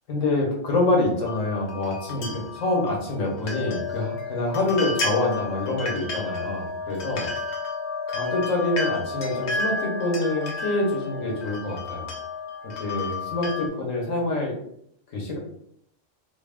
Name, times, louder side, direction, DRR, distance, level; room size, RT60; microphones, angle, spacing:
voice 1, 0.1-7.3 8.1-12.1 12.8-14.5 15.1-15.4, left 2 dB, 80° left, -1 dB, 1.4 m, -26 dB
sound 1, 1.2-13.7, left 3 dB, 60° left, 0.9 m, -32 dB
2.9 x 2.4 x 3.4 m, 0.68 s
omnidirectional pair, 1.3 m